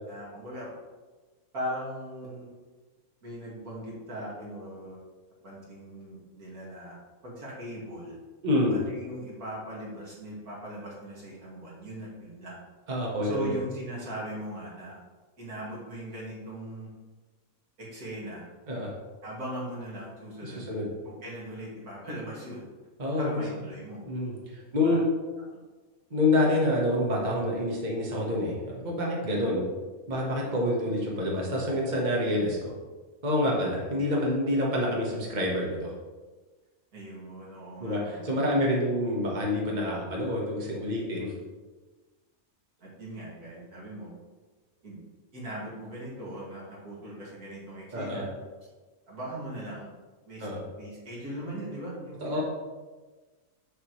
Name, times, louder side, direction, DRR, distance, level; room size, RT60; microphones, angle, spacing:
voice 1, 0.1-0.7 1.5-2.5 3.2-5.0 5.4-7.0 7.2-8.2 8.5-12.6 13.2-15.0 15.4-16.9 17.8-18.5 19.2-20.7 21.0-22.6 23.1-24.0 24.8-25.0 30.8-30.9 33.4-33.6 36.9-38.3 41.2-41.4 42.8-44.1 44.8-45.0 45.3-48.3 49.1-49.9 50.3-50.5 50.8-52.4, right 1 dB, 85° right, -6 dB, 2.7 m, -39 dB
voice 2, 8.4-8.8 12.9-13.6 18.7-18.9 20.4-20.9 23.0-23.4 24.1-25.1 26.1-29.6 30.1-32.7 33.2-35.9 37.8-41.3 47.9-48.2 50.4-50.6 52.2-52.4, left 1 dB, 30° right, -3 dB, 1.4 m, -27 dB
7.4 x 6.8 x 3.1 m, 1.3 s
omnidirectional pair, 1.5 m